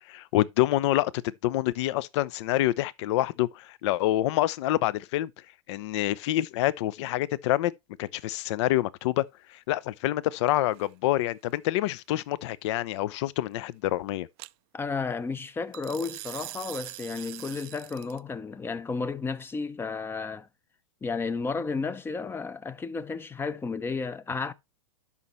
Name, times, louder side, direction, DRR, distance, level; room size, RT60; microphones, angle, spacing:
voice 1, 0.1-5.3 5.7-7.7 8.0-9.2 9.5-14.3, left 15 dB, 55° left, 0.6 m, -27 dB
sound 1, 10.5-10.9 14.4-14.5 15.7-18.2, right 23 dB, 45° right, 0.4 m, -42 dB
voice 2, 14.7-20.5 21.0-24.5, left 4 dB, 15° left, 0.6 m, -32 dB
12.0 x 5.8 x 3.1 m
hypercardioid pair, 110°, 18 cm